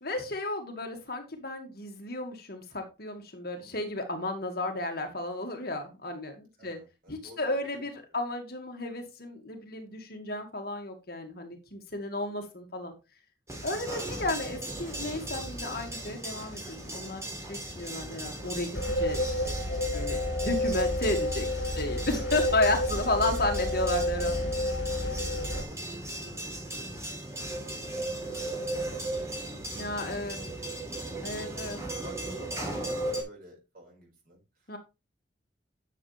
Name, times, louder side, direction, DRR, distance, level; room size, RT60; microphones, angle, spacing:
voice 1, 0.0-6.8 7.1-12.9 13.6-19.6 19.9-21.5 21.8-24.5 29.8-30.4 31.2-31.8 34.7-34.8, left 2 dB, 55° left, 2.0 m, -33 dB
voice 2, 6.6-7.8 25.2-30.9 31.3-34.7, right 1 dB, 50° right, 5.3 m, -52 dB
sound 1, 13.5-33.2, right 1 dB, 15° right, 3.5 m, -37 dB
sound 2, 18.7-25.6, left 1 dB, 80° left, 3.3 m, -30 dB
10.5 x 6.9 x 3.4 m
head